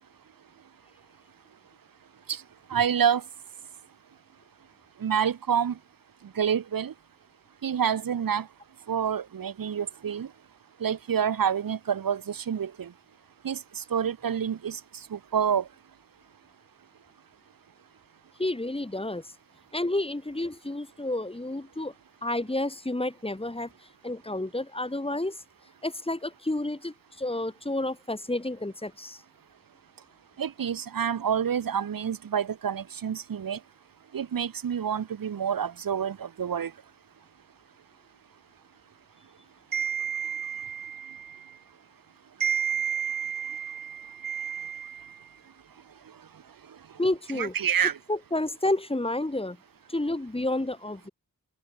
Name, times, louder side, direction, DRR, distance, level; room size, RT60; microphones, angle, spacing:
voice 1, 2.7-3.2 5.0-5.8 6.3-6.9 7.6-8.5 8.9-10.3 10.8-12.9 13.4-15.7 30.4-33.6 34.1-36.7 39.7-41.4 42.4-45.2 47.3-48.0, right 8 dB, 90° right, 1.6 m, -28 dB
voice 2, 18.4-19.3 19.7-21.9 22.2-23.7 24.0-25.4 25.8-29.2 47.0-47.5 48.1-49.6 49.9-51.1, left 2 dB, 15° left, 2.9 m, -30 dB
open air
wide cardioid pair, 85°, 33 cm